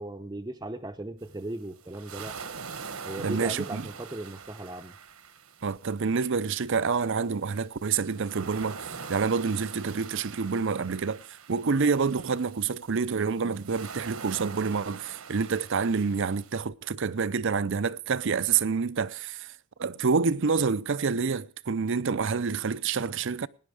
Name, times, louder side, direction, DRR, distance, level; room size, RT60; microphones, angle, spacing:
voice 1, 0.0-2.4 3.1-4.9, right 1 dB, 15° right, 0.7 m, -37 dB
sound 1, 1.2-16.6, right 5 dB, 80° right, 1.5 m, -44 dB
voice 2, 3.2-3.8 5.6-11.2 11.5-19.5 19.8-23.5, right 5 dB, 60° right, 0.6 m, -28 dB
18.5 x 10.5 x 4.9 m
head